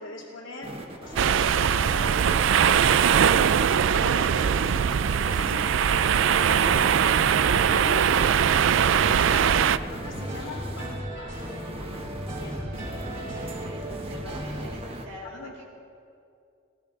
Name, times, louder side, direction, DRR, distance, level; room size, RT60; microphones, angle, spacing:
voice 1, 0.0-8.2 8.9-11.5 12.4-13.0 15.3-15.5, left 2 dB, 85° left, -6 dB, 2.2 m, -40 dB
sound 1, 0.6-15.1, right 1 dB, 30° right, 1.5 m, -38 dB
sound 2, 1.2-9.8, right 8 dB, 65° right, 0.4 m, -21 dB
sound 3, 5.8-14.7, equal, 45° right, 4.6 m, -37 dB
voice 2, 12.6-15.6, equal, 90° right, -2 dB, 4.2 m, -45 dB
22.0 x 15.5 x 4.0 m, 2.4 s
head